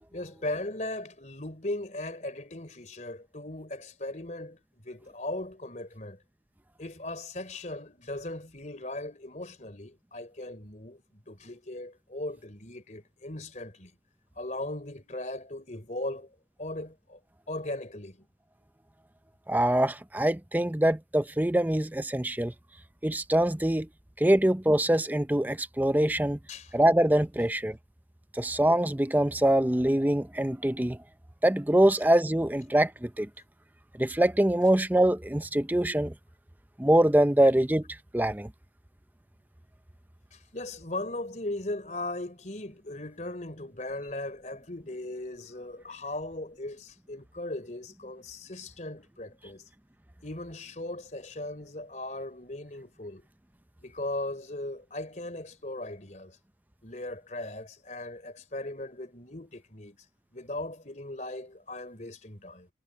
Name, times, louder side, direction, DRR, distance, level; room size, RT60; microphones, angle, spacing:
voice 1, 0.1-4.6 4.8-6.2 6.8-13.9 14.4-16.3 16.6-17.2 17.5-18.3 26.5-26.7 37.4-37.5 40.3-49.7 50.2-53.2 53.8-56.4 56.8-60.0 60.3-62.7, left 2 dB, 40° left, 3.8 m, -38 dB
voice 2, 19.5-22.5 23.0-23.9 24.2-26.4 26.7-27.8 28.3-31.0 31.4-33.3 34.0-36.1 36.8-37.8 38.1-38.5, right 1 dB, 10° right, 0.5 m, -24 dB
head